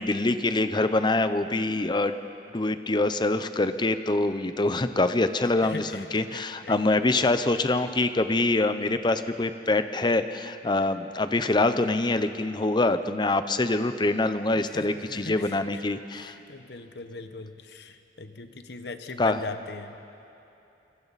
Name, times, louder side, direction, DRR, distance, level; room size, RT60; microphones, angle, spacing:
voice 1, 0.0-2.1 2.5-16.3 19.2-19.4, left 2 dB, 25° left, 10 dB, 0.7 m, -25 dB
voice 2, 5.6-6.0 6.3-6.8 14.7-15.6 16.1-19.9, left 3 dB, 70° left, 8 dB, 1.1 m, -40 dB
28.0 x 23.0 x 4.2 m, 2.9 s
head